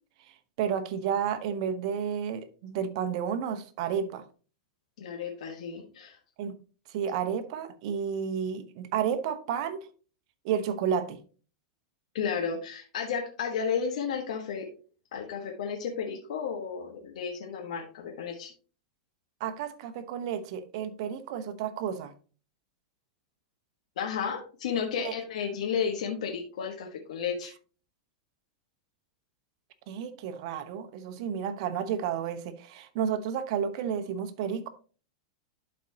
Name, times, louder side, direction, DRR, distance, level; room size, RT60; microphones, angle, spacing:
voice 1, 0.6-4.2 6.4-6.6 6.9-9.9 10.4-11.2 19.4-22.1 25.0-25.1 29.9-34.7, right 8 dB, 60° right, 1.0 m, -31 dB
voice 2, 5.0-6.2 12.1-14.7 15.1-18.5 24.0-27.5, left 6 dB, 75° left, 1.3 m, -33 dB
11.5 x 4.3 x 2.8 m
hypercardioid pair, 120°, 4 cm